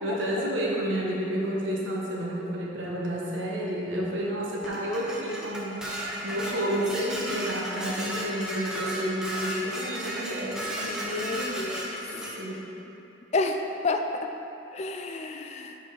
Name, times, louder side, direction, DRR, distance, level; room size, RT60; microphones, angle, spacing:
voice 1, 0.0-5.8 6.2-11.6 12.1-12.6, equal, 85° right, -4 dB, 1.2 m, -30 dB
Dishes pots and pans, 4.6-12.3, right 1 dB, 5° right, 0.7 m, -34 dB
voice 2, 10.8-12.0 13.3-14.3 14.7-15.7, left 3 dB, 35° left, 5 dB, 0.3 m, -30 dB
5.3 x 4.5 x 5.8 m, 2.9 s
head